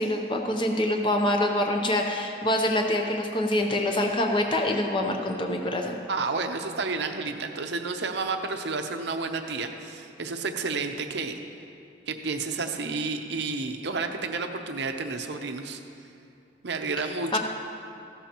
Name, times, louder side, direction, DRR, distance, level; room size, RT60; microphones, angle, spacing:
voice 1, 0.0-5.9 17.3-17.4, left 1 dB, 25° left, 2 dB, 0.7 m, -25 dB
voice 2, 6.1-11.4 12.1-15.8 16.6-17.4, right 4 dB, 65° right, 5 dB, 0.7 m, -31 dB
15.0 x 12.5 x 3.0 m, 2.6 s
head